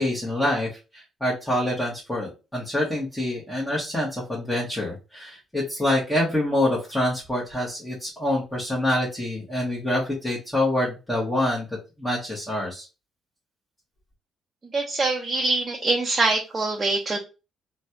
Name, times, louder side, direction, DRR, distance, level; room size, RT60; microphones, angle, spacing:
voice 1, 0.0-11.7 12.0-12.9, left 1 dB, 10° left, -6 dB, 1.2 m, -26 dB
voice 2, 14.7-17.2, right 3 dB, 30° right, -1 dB, 0.7 m, -24 dB
3.1 x 2.3 x 2.8 m, 0.29 s
cardioid pair, 90°, 0 cm